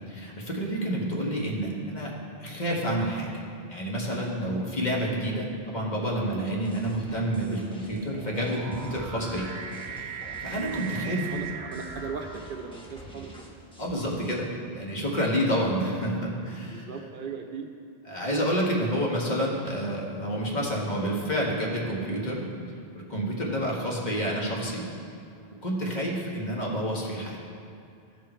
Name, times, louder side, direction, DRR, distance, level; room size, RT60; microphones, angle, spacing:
voice 1, 0.0-2.1 2.4-3.4 3.7-9.5 9.9-11.3 13.8-16.8 18.1-22.5 22.9-24.8 25.6-27.4, equal, 45° left, -3 dB, 1.7 m, -29 dB
sound 1, 3.8-4.0 4.8-13.0, right 7 dB, 90° right, 1.1 m, -41 dB
sound 2, 6.6-14.4, equal, 5° left, 1.2 m, -47 dB
voice 2, 10.6-13.5 16.6-17.7, right 5 dB, 60° right, 5 dB, 0.8 m, -38 dB
14.5 x 5.1 x 4.4 m, 2.4 s
omnidirectional pair, 1.0 m